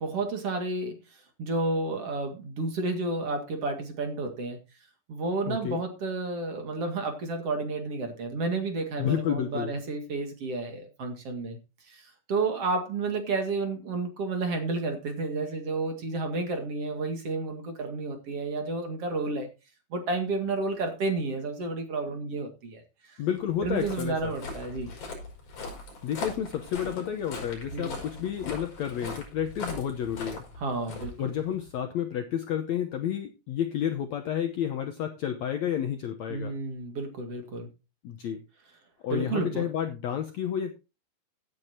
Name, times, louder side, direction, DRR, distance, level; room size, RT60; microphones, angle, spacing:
voice 1, 0.0-4.6 5.1-11.6 11.9-19.5 19.9-23.2 23.6-24.9 27.7-28.0 30.6-31.3 36.3-37.7 39.1-39.7, right 3 dB, 45° right, 5 dB, 2.7 m, -31 dB
voice 2, 5.5-5.8 9.0-9.8 23.2-24.4 26.0-30.4 31.2-36.5 38.0-38.4 39.0-40.7, left 9 dB, 70° left, 6 dB, 1.7 m, -30 dB
Walk footsteps, 23.4-31.7, left 3 dB, 55° left, 7.0 m, -40 dB
16.5 x 8.7 x 2.8 m, 0.28 s
omnidirectional pair, 4.2 m